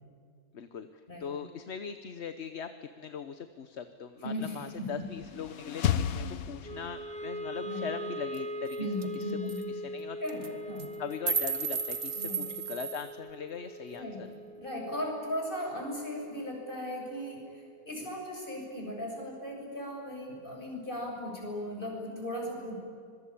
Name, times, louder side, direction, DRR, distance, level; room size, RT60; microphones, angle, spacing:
voice 1, 0.5-8.8 9.1-10.2 11.0-14.3, left 7 dB, 50° left, 10 dB, 1.2 m, -40 dB
voice 2, 4.2-5.1 7.6-7.9 8.8-9.6 10.2-10.9 12.2-12.6 13.9-14.3 14.5-22.7, left 1 dB, 35° left, 0 dB, 7.2 m, -37 dB
sound 1, 4.9-7.3, left 9 dB, 70° left, 1.3 m, -33 dB
Wind instrument woodwind instrument, 6.6-18.9, equal, 5° left, 1.1 m, -42 dB
sound 2, 8.3-8.4 8.7-8.8 9.0-9.2 9.5-9.6 10.3-10.5 10.8-13.1, right 6 dB, 60° right, 1.9 m, -33 dB
25.5 x 22.0 x 8.6 m, 2.3 s
omnidirectional pair, 1.6 m